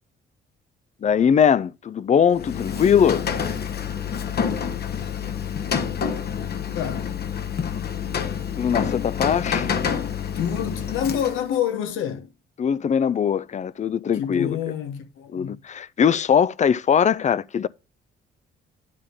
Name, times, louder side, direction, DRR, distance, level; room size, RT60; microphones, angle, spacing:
voice 1, 1.0-3.2 8.6-9.7 12.6-14.6 15.3-17.7, left 7 dB, 35° left, 0.5 m, -21 dB
Rain, 2.3-11.6, left 7 dB, 55° left, 1.2 m, -28 dB
voice 2, 6.7-7.1 10.3-12.3 14.1-15.6, left 9 dB, 90° left, 1.2 m, -27 dB
10.0 x 3.6 x 6.9 m
cardioid pair, 90°, 20 cm